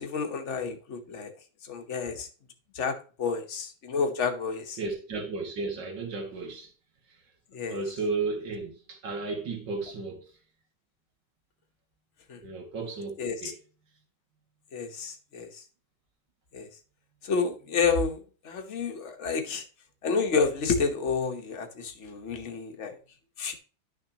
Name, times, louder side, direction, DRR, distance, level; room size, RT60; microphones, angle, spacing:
voice 1, 0.0-1.3 1.6-2.3 2.7-4.8 7.5-7.8 12.3-12.4 13.2-13.5 14.7-15.6 16.5-16.7 17.2-19.6 20.0-23.0 23.4-23.6, left 5 dB, 45° left, 1.3 m, -30 dB
voice 2, 4.8-6.7 7.1-7.2 7.7-10.3 12.4-13.6, right 3 dB, 70° right, 2.5 m, -34 dB
11.0 x 6.5 x 2.9 m
omnidirectional pair, 2.1 m